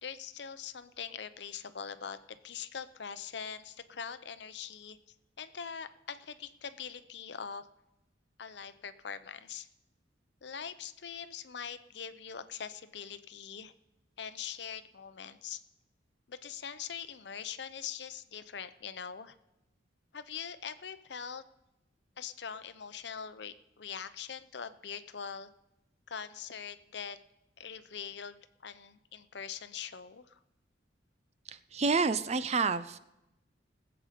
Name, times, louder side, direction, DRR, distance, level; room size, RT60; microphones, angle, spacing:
voice 1, 0.0-5.0 5.4-7.7 8.4-9.7 10.4-13.7 14.2-15.6 16.3-19.4 20.1-21.4 22.2-25.5 26.1-27.2 27.6-30.4, left 7 dB, 65° left, 12 dB, 0.7 m, -42 dB
voice 2, 31.5-33.0, right 4 dB, 35° right, 13 dB, 0.5 m, -29 dB
19.5 x 8.0 x 5.1 m, 0.91 s
head